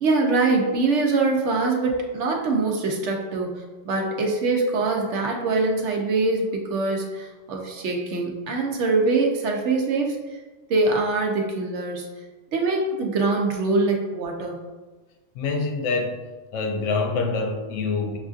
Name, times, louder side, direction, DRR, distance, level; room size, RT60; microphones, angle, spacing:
voice 1, 0.0-3.5 3.8-10.2 10.7-12.1 12.5-14.6, right 3 dB, 75° right, 1 dB, 1.0 m, -23 dB
voice 2, 15.3-16.1 16.5-18.2, left 4 dB, 90° left, 2 dB, 1.0 m, -25 dB
6.3 x 2.5 x 2.4 m, 1.2 s
omnidirectional pair, 1.2 m